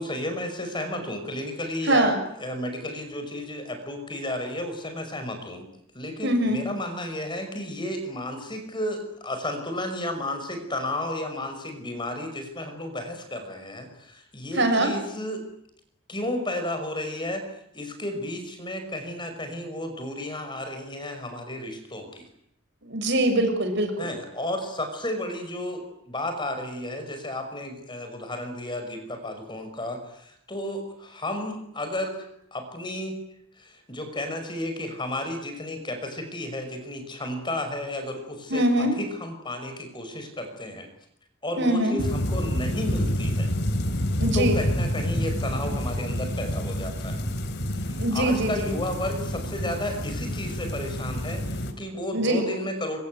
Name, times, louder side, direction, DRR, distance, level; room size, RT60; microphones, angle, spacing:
voice 1, 0.0-5.7 5.9-15.4 16.1-17.5 17.7-22.3 24.0-33.2 33.5-40.9 41.4-43.5 44.3-47.2 47.8-53.0, left 1 dB, 20° left, 6 dB, 5.6 m, -33 dB
voice 2, 1.9-2.2 6.2-6.6 14.6-14.9 22.8-24.1 38.5-38.9 41.6-42.0 44.2-44.6 48.0-48.7 52.1-52.5, right 1 dB, 55° right, 6 dB, 6.7 m, -23 dB
sound 1, 42.0-51.7, equal, 50° left, 3.1 m, -28 dB
25.0 x 24.5 x 9.4 m, 0.75 s
head